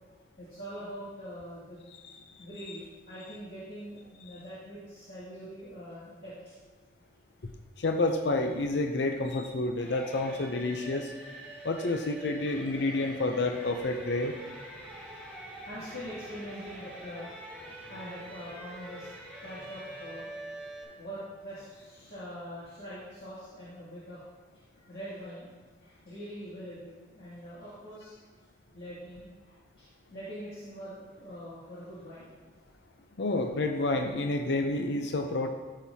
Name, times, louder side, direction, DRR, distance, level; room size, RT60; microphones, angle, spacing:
voice 1, 0.4-1.9 2.4-6.5 15.7-17.6 17.9-19.1 19.4-20.3 21.0-24.2 24.7-28.2 28.7-29.3 29.8-32.3, equal, 70° left, -11 dB, 2.3 m, -43 dB
voice 2, 7.8-11.1 11.6-14.3 33.2-35.5, left 2 dB, 85° left, 5 dB, 0.6 m, -29 dB
sound 1, 9.8-20.8, right 1 dB, 10° left, 2.3 m, -45 dB
13.0 x 5.8 x 2.8 m, 1.3 s
head